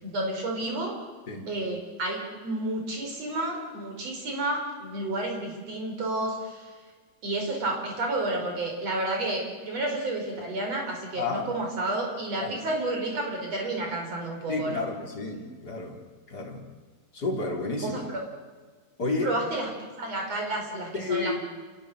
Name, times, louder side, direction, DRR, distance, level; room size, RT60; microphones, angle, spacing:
voice 1, 0.0-1.0 1.5-6.7 7.2-14.9 17.8-18.0 19.2-19.7 20.0-21.4, right 2 dB, 40° right, 2 dB, 6.1 m, -31 dB
voice 2, 11.2-11.5 12.4-12.6 14.5-16.0 16.3-16.7 17.1-18.0 19.0-19.3 20.9-21.4, left 3 dB, 25° left, 0 dB, 3.8 m, -31 dB
29.0 x 18.0 x 8.1 m, 1.5 s
omnidirectional pair, 4.5 m